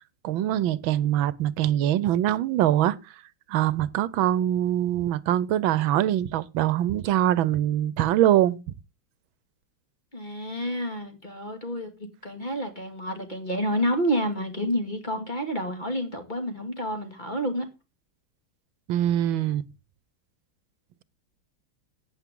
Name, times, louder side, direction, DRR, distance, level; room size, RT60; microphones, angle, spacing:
voice 1, 0.2-3.0 3.5-8.6 18.9-19.6, right 12 dB, 80° right, 1.5 m, -23 dB
voice 2, 10.1-17.7, equal, 25° left, 2.3 m, -29 dB
14.5 x 9.5 x 3.7 m
omnidirectional pair, 2.2 m